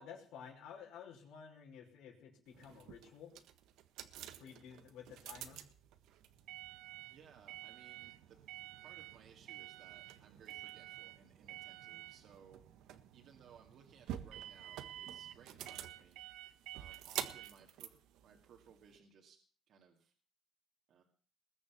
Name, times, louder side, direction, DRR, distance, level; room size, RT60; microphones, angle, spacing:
voice 1, 0.0-3.3 4.4-5.6, left 7 dB, 90° left, 0 dB, 5.2 m, -53 dB
sound 1, 2.5-19.0, right 12 dB, 90° right, 1.4 m, -49 dB
voice 2, 4.1-4.5 7.1-8.4 8.8-12.6 13.1-16.2 16.7-19.4 19.7-20.1 20.9-21.0, right 7 dB, 55° right, 0 dB, 2.3 m, -62 dB
20.5 x 7.3 x 8.4 m, 0.43 s
cardioid pair, 165°, 0 cm